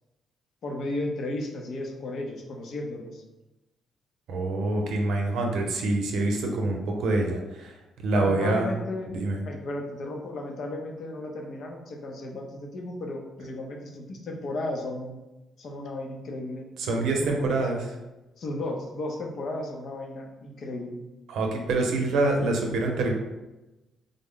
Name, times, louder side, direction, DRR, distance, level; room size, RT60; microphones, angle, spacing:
voice 1, 0.6-3.2 8.1-9.1 9.4-15.2 15.6-17.7 18.4-21.0, left 2 dB, 60° left, 2 dB, 0.6 m, -34 dB
voice 2, 4.3-7.7 8.0-8.7 9.1-9.4 16.8-17.8 21.3-23.1, right 2 dB, 80° right, 2 dB, 0.6 m, -26 dB
3.6 x 2.1 x 3.6 m, 1.0 s
cardioid pair, 90°, 0 cm